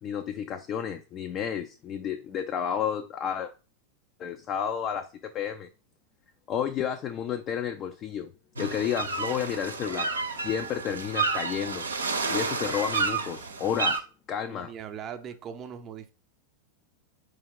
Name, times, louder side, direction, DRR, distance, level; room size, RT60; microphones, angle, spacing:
voice 1, 0.0-3.5 4.2-5.1 5.3-5.7 6.5-8.3 8.6-10.1 10.4-11.9 12.3-14.7, left 8 dB, 30° left, 0.4 m, -31 dB
sound 1, 8.6-14.0, right 4 dB, 75° right, 0.6 m, -30 dB
voice 2, 14.5-16.1, right 8 dB, 30° right, 0.6 m, -40 dB
4.5 x 3.3 x 3.6 m
figure-of-eight pair, 90°, 0 cm